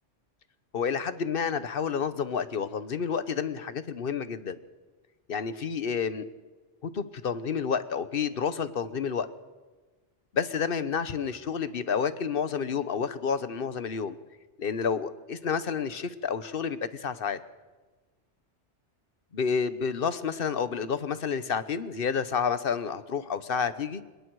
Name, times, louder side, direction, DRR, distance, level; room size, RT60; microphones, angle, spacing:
voice 1, 0.7-4.6 5.3-6.3 6.8-9.3 10.3-14.2 14.6-17.4 19.3-24.0, left 6 dB, 50° left, 13 dB, 1.1 m, -30 dB
26.0 x 21.0 x 4.8 m, 1.3 s
omnidirectional pair, 1.2 m